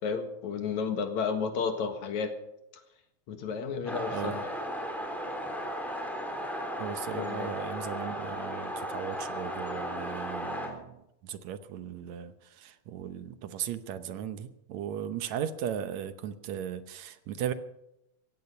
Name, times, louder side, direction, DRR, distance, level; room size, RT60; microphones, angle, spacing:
voice 1, 0.0-2.4 3.3-4.4 7.1-7.5, left 5 dB, 70° left, 7 dB, 2.9 m, -32 dB
sound 1, 3.9-10.7, equal, ahead, 3.2 m, -35 dB
voice 2, 4.1-4.4 6.8-17.5, right 9 dB, 75° right, 11 dB, 2.1 m, -37 dB
16.5 x 15.5 x 5.5 m, 0.84 s
omnidirectional pair, 3.5 m